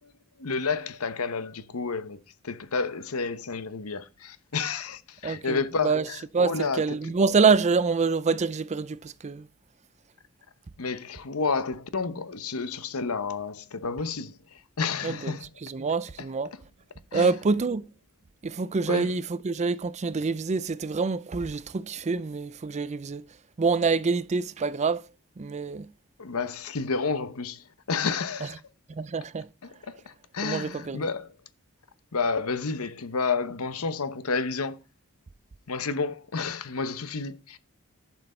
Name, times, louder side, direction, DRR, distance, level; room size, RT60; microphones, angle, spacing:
voice 1, 0.4-6.8 10.8-15.5 17.1-17.3 18.9-19.1 26.2-28.6 29.6-31.3 32.1-34.8 35.7-37.6, left 4 dB, 80° left, 0.9 m, -30 dB
voice 2, 5.2-6.1 6.3-9.5 15.0-16.5 17.1-17.9 18.4-23.3 23.6-25.0 25.4-25.9 28.4-28.5 28.9-29.5 30.4-31.1, right 4 dB, 30° right, 0.4 m, -26 dB
11.5 x 6.0 x 4.3 m
head